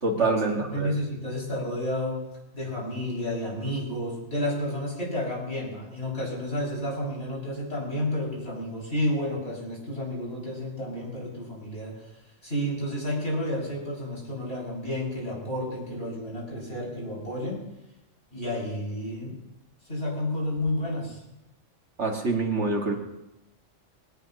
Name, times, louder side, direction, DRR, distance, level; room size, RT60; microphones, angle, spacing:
voice 1, 0.0-0.9 22.0-22.9, right 3 dB, 65° right, 1 dB, 2.2 m, -25 dB
voice 2, 0.7-2.2 2.5-12.1 12.4-17.6 18.3-19.4 19.9-21.2, left 1 dB, 55° left, -4 dB, 6.7 m, -31 dB
22.0 x 18.5 x 2.9 m, 0.92 s
omnidirectional pair, 1.3 m